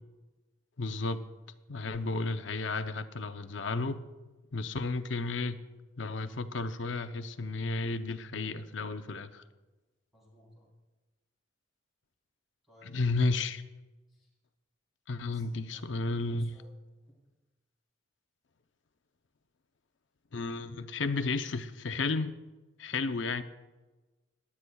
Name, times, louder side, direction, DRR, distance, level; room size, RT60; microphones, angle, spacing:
voice 1, 0.8-1.2 1.7-4.0 4.5-5.6 6.0-9.4 12.8-13.6 15.1-16.6 20.3-22.4 22.8-23.4, left 3 dB, 75° left, 10 dB, 0.6 m, -33 dB
voice 2, 10.1-10.7 12.7-13.1 14.1-14.3 15.3-15.9 16.2-17.2, equal, ahead, -6 dB, 3.8 m, -60 dB
18.5 x 11.5 x 2.3 m, 1.2 s
head